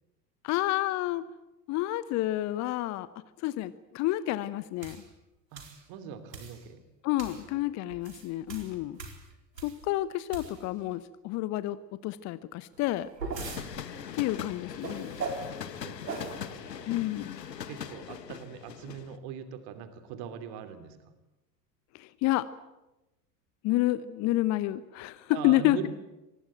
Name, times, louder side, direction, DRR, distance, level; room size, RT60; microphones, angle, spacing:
voice 1, 0.4-1.3 1.7-3.1 3.4-5.0 7.0-9.0 9.6-13.1 14.1-15.1 16.9-17.4 21.9-22.5 23.6-25.9, left 16 dB, 35° left, 16 dB, 0.9 m, -29 dB
sound 1, 4.8-5.0 5.6-5.8 6.3-6.6 7.2-7.4 7.9-9.9 10.3-10.8 12.7-13.7 14.8-15.5 16.1-16.4, right 4 dB, 75° right, 4.4 m, -39 dB
voice 2, 5.5-6.8 7.2-7.6 13.4-13.6 15.6-17.0 17.6-21.0 25.3-25.9, right 8 dB, 45° right, 9 dB, 3.0 m, -42 dB
sound 2, 13.4-19.2, left 8 dB, 70° left, 1.6 m, -41 dB
25.0 x 20.0 x 9.1 m, 1.0 s
figure-of-eight pair, 80°, 50 cm